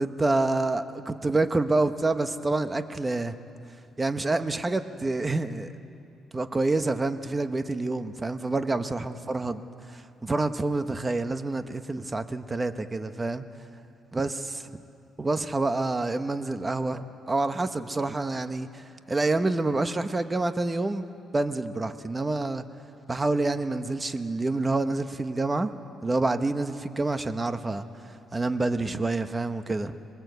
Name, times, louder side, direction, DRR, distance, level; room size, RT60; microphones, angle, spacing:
voice 1, 0.0-3.3 4.0-5.7 6.3-13.4 14.1-14.7 15.2-21.0 21.3-22.6 23.1-25.7 26.0-29.9, right 2 dB, 20° right, 9 dB, 1.1 m, -27 dB
26.5 x 21.5 x 8.2 m, 2.5 s
cardioid pair, 90°, 0 cm